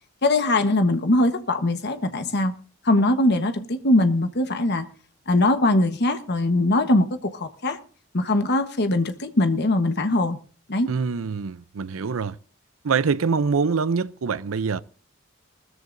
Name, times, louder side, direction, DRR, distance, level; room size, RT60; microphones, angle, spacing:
voice 1, 0.2-2.5 2.8-4.8 5.3-7.8 8.1-10.4 10.7-10.9, left 2 dB, 55° left, 1.2 m, -21 dB
voice 2, 10.9-12.4 12.8-14.8, right 5 dB, 80° right, 0.6 m, -24 dB
20.0 x 14.0 x 2.6 m
head